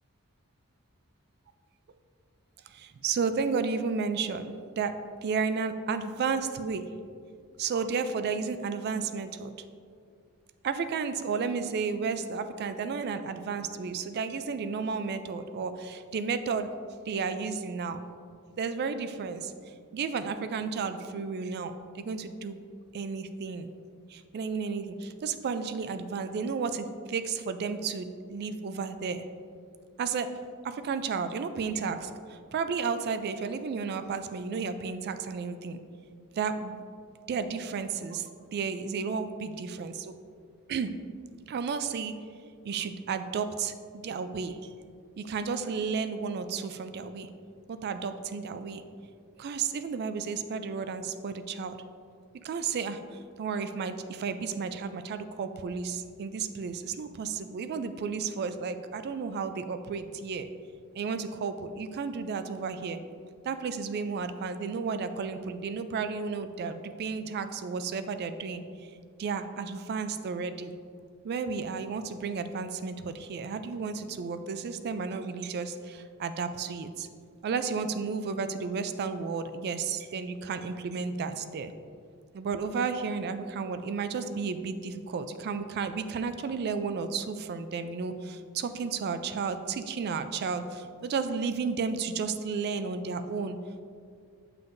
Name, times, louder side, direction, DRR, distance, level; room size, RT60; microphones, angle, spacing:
voice 1, 2.7-6.8 7.6-9.5 10.6-16.7 17.1-18.1 18.6-19.5 19.9-22.6 22.9-23.7 24.1-29.2 30.0-30.3 30.6-35.8 36.3-36.8 37.3-40.2 40.7-40.9 41.5-42.1 42.6-44.6 45.2-47.3 47.7-48.8 49.4-51.8 52.4-60.5 60.9-63.0 63.4-68.9 69.2-70.8 71.2-77.1 77.4-81.7 82.3-93.6, right 5 dB, 50° right, 10 dB, 0.3 m, -33 dB
7.0 x 5.7 x 2.6 m, 2.3 s
head